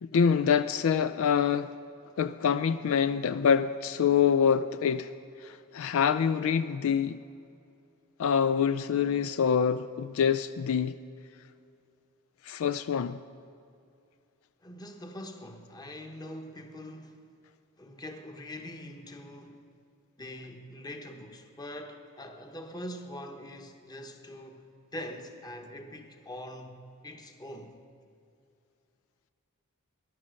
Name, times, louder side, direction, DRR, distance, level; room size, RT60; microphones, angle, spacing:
voice 1, 0.0-1.7 2.2-5.1 5.4-7.2 8.2-10.9 12.5-13.2, left 7 dB, 65° left, 0.4 m, -26 dB
voice 2, 14.6-17.3 17.8-19.6 20.2-24.6 24.9-27.7, left 1 dB, 20° left, 1.1 m, -43 dB
15.0 x 11.0 x 6.4 m
head